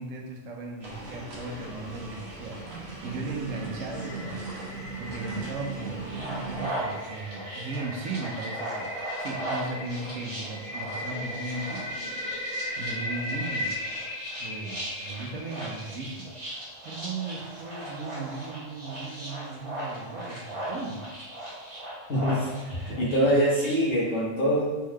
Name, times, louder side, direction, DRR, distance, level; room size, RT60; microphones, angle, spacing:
voice 1, 0.0-4.5 5.0-8.9 9.2-11.9 12.8-13.7 14.4-16.3 16.8-21.1 23.0-23.4, right 3 dB, 85° right, 2 dB, 1.1 m, -37 dB
sound 1, 0.8-6.7, right 3 dB, 55° right, 1.2 m, -38 dB
sound 2, 2.8-16.2, left 1 dB, 40° left, 1.0 m, -38 dB
sound 3, 6.0-23.7, right 1 dB, 25° right, 1.6 m, -38 dB
voice 2, 22.1-24.6, equal, 75° left, -6 dB, 1.8 m, -24 dB
4.4 x 3.7 x 3.2 m, 1.2 s
omnidirectional pair, 1.3 m